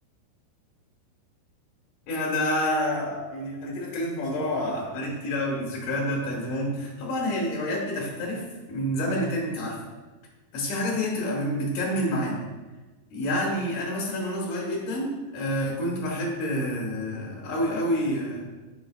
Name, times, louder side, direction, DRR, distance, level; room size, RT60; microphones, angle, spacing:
voice 1, 2.1-8.4 8.7-9.8 10.5-12.4 13.1-18.5, left 1 dB, 60° left, -2 dB, 2.8 m, -28 dB
7.8 x 6.6 x 2.4 m, 1.2 s
omnidirectional pair, 4.5 m